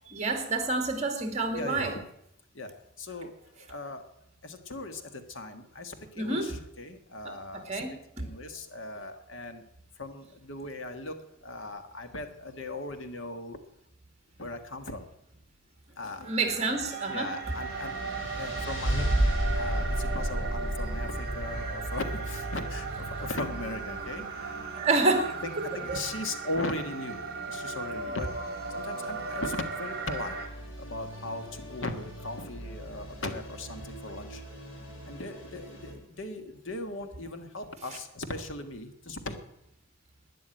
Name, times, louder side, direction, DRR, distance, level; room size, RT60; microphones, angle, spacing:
voice 1, 0.1-1.9 6.2-6.5 7.2-7.9 16.3-17.3 24.8-26.0, right 3 dB, 35° right, 5 dB, 2.4 m, -28 dB
voice 2, 1.5-2.0 2.5-4.1 4.4-7.8 8.2-9.6 10.0-13.6 14.4-15.1 16.0-16.4 17.1-19.1 19.5-25.0 25.4-27.2 27.5-28.3 28.7-30.4 30.8-34.4 35.1-39.4, left 2 dB, 65° left, 7 dB, 1.7 m, -38 dB
sound 1, 16.2-30.5, right 4 dB, 50° right, 1.9 m, -37 dB
sound 2, 17.4-35.9, right 1 dB, 80° left, 6.8 m, -36 dB
12.0 x 10.0 x 9.0 m, 0.76 s
head